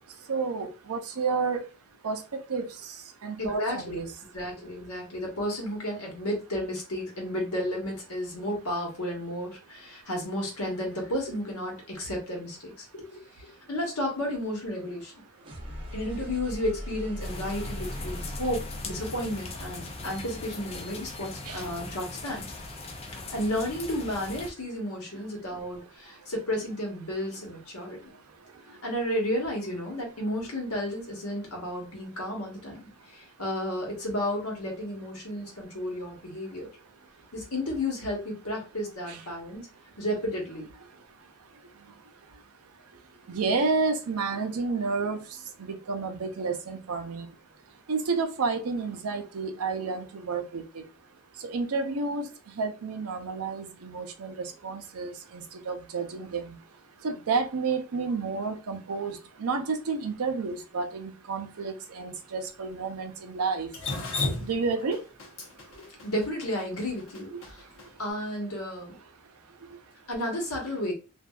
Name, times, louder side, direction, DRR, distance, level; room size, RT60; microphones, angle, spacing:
voice 1, 0.3-1.6 2.0-2.2 2.5-2.7 3.2-4.1 21.5-21.6 39.1-39.2 43.3-45.2 45.6-47.3 47.9-50.6 51.4-52.3 52.6-56.5 57.0-63.7 64.4-65.0 67.3-67.4, right 4 dB, 85° right, 0.5 m, -30 dB
voice 2, 3.4-4.1 4.3-15.2 15.9-22.4 23.3-28.0 28.8-32.8 33.1-36.7 37.3-39.7 40.0-40.7 65.7-67.6 68.0-69.0 70.1-70.9, left 1 dB, 90° left, 1.2 m, -32 dB
sound 1, 15.4-21.2, equal, 25° right, 0.6 m, -40 dB
sound 2, 17.2-24.5, left 3 dB, 30° left, 0.4 m, -40 dB
Drip, 63.7-67.9, left 2 dB, 65° left, 0.7 m, -33 dB
2.6 x 2.3 x 2.3 m
head